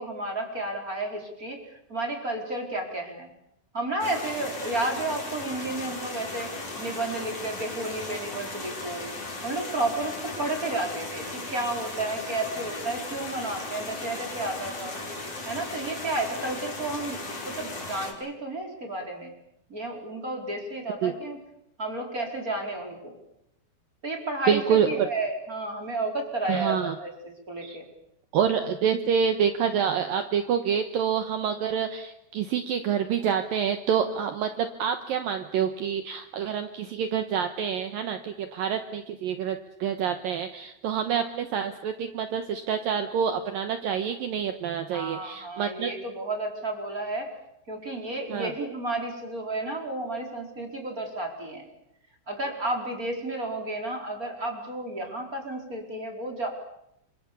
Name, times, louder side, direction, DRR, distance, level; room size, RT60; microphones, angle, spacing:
voice 1, 0.0-3.3 3.7-9.0 9.4-15.0 15.4-19.3 19.7-21.4 21.8-23.2 24.0-27.9 44.9-47.3 47.7-51.7 52.3-56.5, right 2 dB, 20° right, 2 dB, 4.7 m, -32 dB
sound 1, 4.0-18.1, left 2 dB, 35° left, 6.5 m, -37 dB
voice 2, 24.5-25.1 26.5-26.9 27.6-27.8 28.3-45.9 48.3-48.5, right 7 dB, 65° right, 8 dB, 2.6 m, -27 dB
28.5 x 25.5 x 7.1 m, 0.80 s
omnidirectional pair, 4.9 m